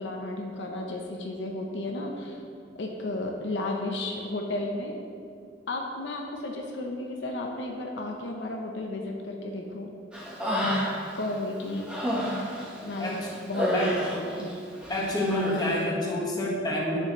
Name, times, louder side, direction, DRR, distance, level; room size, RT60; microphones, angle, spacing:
voice 1, 0.0-2.4 2.7-4.9 5.7-9.9 10.6-10.8 11.1-11.8 12.8-14.5, left 2 dB, 85° left, 1 dB, 0.8 m, -33 dB
Human voice, 10.1-11.2 11.6-14.5 14.8-15.7, equal, 5° right, 1.3 m, -30 dB
voice 2, 14.9-17.0, left 1 dB, 25° left, -5 dB, 1.5 m, -28 dB
8.2 x 6.9 x 3.1 m, 2.4 s
head